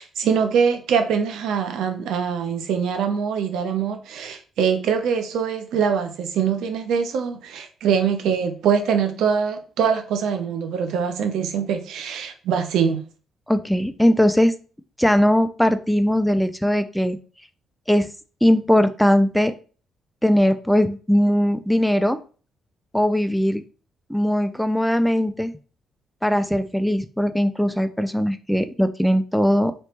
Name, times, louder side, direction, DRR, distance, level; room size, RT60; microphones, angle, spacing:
voice 1, 0.0-13.0, right 7 dB, 80° right, 0.7 m, -23 dB
voice 2, 13.5-14.5 15.0-17.2 17.9-18.1 18.4-19.5 20.2-22.2 22.9-23.6 24.1-25.5 26.2-29.7, equal, ahead, 0.4 m, -19 dB
3.2 x 3.0 x 4.3 m
cardioid pair, 90°, 0 cm